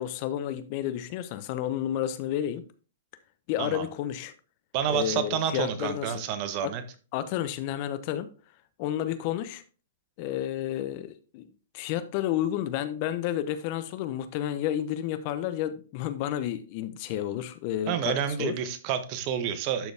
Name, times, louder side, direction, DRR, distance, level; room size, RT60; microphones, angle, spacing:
voice 1, 0.0-2.6 3.5-4.3 4.9-6.1 6.6-6.7 7.1-8.3 8.8-9.6 10.2-11.4 11.7-18.5, left 11 dB, 45° left, 0.8 m, -31 dB
voice 2, 4.7-6.8 17.9-19.9, right 9 dB, 40° right, 1.1 m, -29 dB
12.0 x 4.1 x 3.4 m
hypercardioid pair, 135°, 0 cm